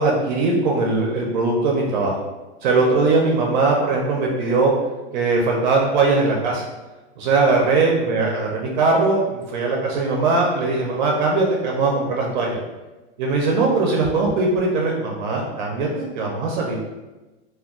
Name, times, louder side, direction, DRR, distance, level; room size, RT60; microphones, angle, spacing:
voice 1, 0.0-2.2 2.6-4.7 5.1-6.6 7.2-12.6 13.2-16.8, right 3 dB, 50° right, -1 dB, 0.4 m, -20 dB
2.2 x 2.2 x 3.5 m, 1.1 s
supercardioid pair, 170°, 31 cm